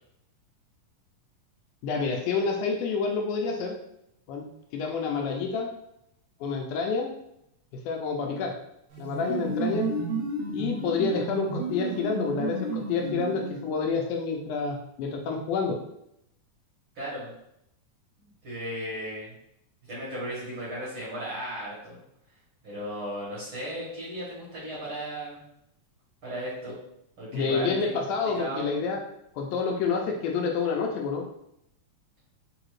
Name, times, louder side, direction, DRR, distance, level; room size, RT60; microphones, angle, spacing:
voice 1, 1.8-3.8 4.3-4.5 4.7-5.7 6.4-7.1 7.9-8.5 9.0-9.9 10.5-15.8 27.3-29.0 29.4-31.2, left 5 dB, 80° left, 1 dB, 1.9 m, -28 dB
sound 1, 8.9-13.8, right 2 dB, 75° right, 1.2 m, -32 dB
voice 2, 17.0-17.3 18.2-19.3 19.9-22.0 22.6-25.4 26.2-26.8 27.2-28.0 28.3-29.0, right 1 dB, 55° right, -9 dB, 1.6 m, -36 dB
4.8 x 2.6 x 3.1 m, 0.79 s
omnidirectional pair, 3.8 m